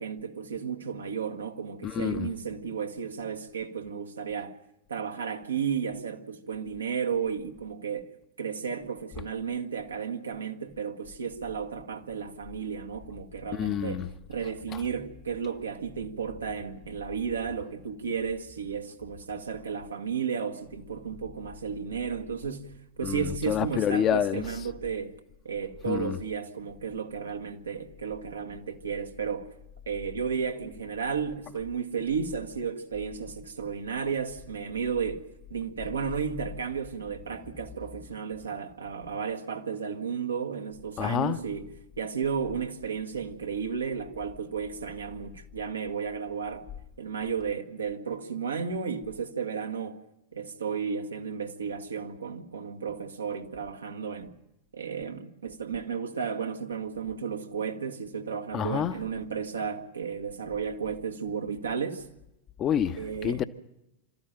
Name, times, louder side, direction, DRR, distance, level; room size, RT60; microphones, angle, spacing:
voice 1, 0.0-4.6 4.9-8.1 8.4-25.2 25.5-29.5 29.9-35.2 35.5-46.6 47.0-50.0 50.3-54.3 54.7-62.1 63.0-63.4, right 6 dB, 75° right, 1.8 m, -33 dB
voice 2, 1.8-2.3 13.5-14.1 23.0-24.4 25.9-26.2 41.0-41.4 58.5-58.9 62.6-63.5, left 9 dB, 30° left, 1.0 m, -28 dB
27.0 x 13.5 x 9.1 m
figure-of-eight pair, 90°, 0 cm